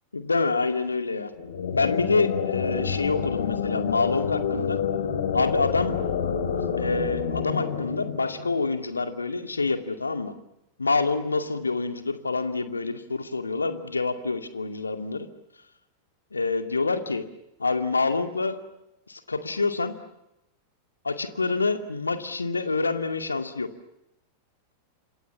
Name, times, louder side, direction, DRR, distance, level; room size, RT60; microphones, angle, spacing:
voice 1, 0.1-1.3 1.7-4.8 5.3-6.0 6.5-10.3 10.8-15.3 16.3-17.2 17.6-18.6 19.1-20.0 21.0-23.7, left 3 dB, 80° left, 8 dB, 2.4 m, -27 dB
sound 1, 1.3-8.9, left 7 dB, 65° left, 3.7 m, -28 dB
29.5 x 27.0 x 7.2 m, 0.88 s
figure-of-eight pair, 90°, 0 cm